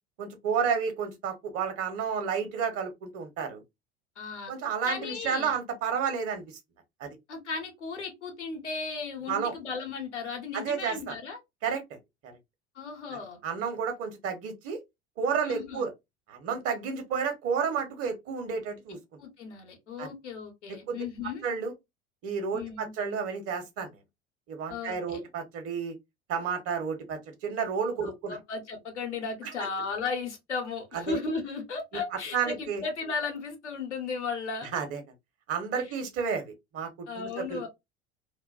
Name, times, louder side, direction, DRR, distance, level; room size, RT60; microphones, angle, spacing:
voice 1, 0.2-3.6 4.5-6.4 7.0-7.1 9.3-9.5 10.5-11.1 11.6-12.3 13.4-14.8 15.2-15.9 16.3-19.0 20.0-20.1 20.9-21.0 21.4-21.7 22.2-24.0 24.5-25.9 26.3-28.4 30.9-31.2 32.3-32.8 34.7-35.0 35.5-36.9 37.1-37.7, right 6 dB, 45° right, 0.9 m, -31 dB
voice 2, 4.2-4.5 4.8-5.6 7.3-11.4 12.7-13.4 15.4-15.8 18.9-21.4 22.5-22.9 24.7-25.2 28.0-34.7 35.8-35.9 37.1-37.7, left 4 dB, 85° left, 0.9 m, -35 dB
2.5 x 2.2 x 2.3 m
figure-of-eight pair, 75°, 34 cm